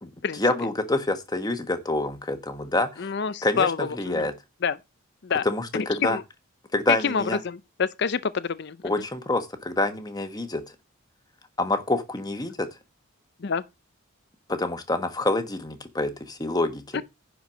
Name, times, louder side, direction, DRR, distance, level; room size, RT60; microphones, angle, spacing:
voice 1, 0.0-3.1 3.4-4.3 5.4-6.2 6.7-7.4 8.8-10.6 11.6-12.7 14.5-17.0, left 2 dB, 20° left, 1.3 m, -27 dB
voice 2, 3.0-4.3 4.6-4.8 5.2-5.4 5.7-6.2 7.0-8.8 13.4-13.6 16.9-17.0, left 6 dB, 50° left, 0.5 m, -27 dB
10.5 x 4.6 x 6.2 m
head